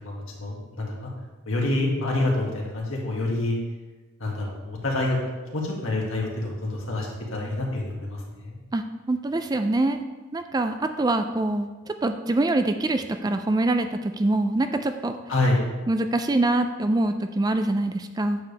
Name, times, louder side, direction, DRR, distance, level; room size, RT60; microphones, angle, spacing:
voice 1, 0.0-1.1 1.5-3.6 4.2-5.2 5.5-8.6 15.3-15.7, left 2 dB, 80° left, -2 dB, 1.9 m, -27 dB
voice 2, 8.7-10.0 10.3-11.7 12.0-15.2 15.9-18.4, right 2 dB, 20° right, 8 dB, 0.3 m, -24 dB
9.2 x 7.0 x 3.3 m, 1.2 s
head